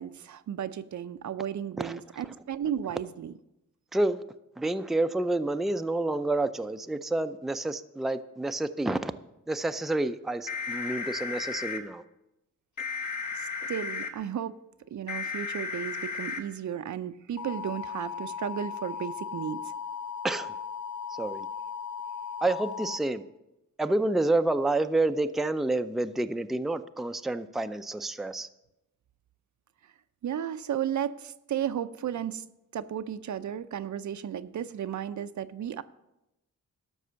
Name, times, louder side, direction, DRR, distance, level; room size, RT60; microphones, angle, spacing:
voice 1, 0.0-3.3 13.3-14.6 14.9-19.7 30.2-32.4 32.7-35.8, right 9 dB, 65° right, 12 dB, 0.6 m, -34 dB
voice 2, 3.9-4.2 4.6-9.1 9.5-12.0 20.2-20.5 21.2-21.5 22.4-23.2 23.8-28.5, right 2 dB, ahead, 9 dB, 0.4 m, -29 dB
sound 1, 10.5-11.8 12.8-14.1 15.1-16.4 17.4-23.0, left 5 dB, 65° left, 1.5 m, -35 dB
12.5 x 5.4 x 6.8 m, 0.92 s
cardioid pair, 85°, 31 cm